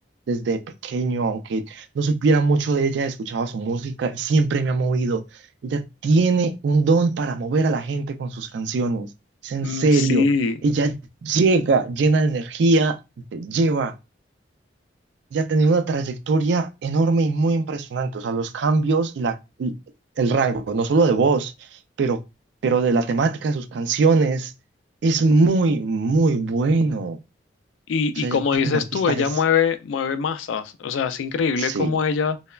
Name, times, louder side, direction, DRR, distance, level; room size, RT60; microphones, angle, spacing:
voice 1, 0.3-5.2 5.6-9.1 9.4-10.2 10.6-11.0 11.2-13.0 13.3-13.9 15.3-19.7 20.2-21.5 22.0-22.2 22.6-24.5 25.0-27.2 28.2-28.4 28.6-28.8 29.1-29.2 31.6-31.9, right 3 dB, 65° right, 0.3 m, -21 dB
voice 2, 9.6-10.6 27.9-32.4, left 6 dB, 85° left, 0.3 m, -23 dB
3.1 x 2.0 x 2.2 m
head